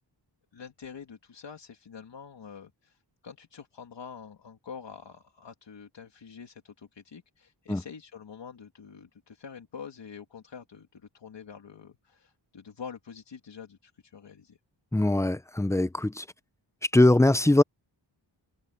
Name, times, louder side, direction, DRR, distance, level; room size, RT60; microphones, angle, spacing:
voice 1, 0.5-14.6, left 6 dB, 70° left, 2.5 m, -46 dB
voice 2, 14.9-16.3 16.9-17.6, left 2 dB, 5° left, 0.6 m, -21 dB
wide cardioid pair, 110°, 44 cm